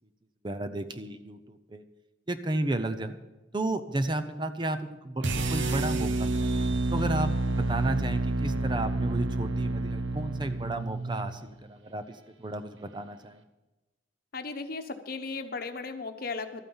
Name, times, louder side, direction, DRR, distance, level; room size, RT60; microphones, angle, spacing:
voice 1, 0.4-1.8 2.3-3.2 3.5-6.5 6.9-13.4, right 2 dB, 25° right, 10 dB, 0.6 m, -32 dB
sound 1, 5.2-11.4, right 2 dB, 85° right, 1.0 m, -29 dB
voice 2, 14.3-16.6, left 4 dB, 50° left, 7 dB, 1.0 m, -36 dB
13.0 x 9.0 x 7.1 m, 1.1 s
head